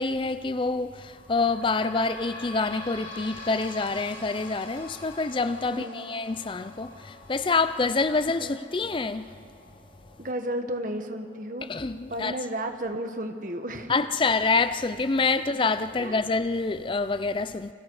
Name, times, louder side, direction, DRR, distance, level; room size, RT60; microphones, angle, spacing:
voice 1, 0.0-9.3 11.7-12.4 13.9-17.7, left 3 dB, 30° left, 0.4 m, -27 dB
sound 1, 1.1-14.3 14.8-14.9 15.2-15.3 16.1-16.2, left 1 dB, 85° left, 4.9 m, -46 dB
voice 2, 5.7-6.1 8.4-8.5 10.2-11.7 12.1-13.9 16.0-16.2, right 1 dB, 45° right, 1.6 m, -33 dB
29.5 x 25.5 x 4.9 m
head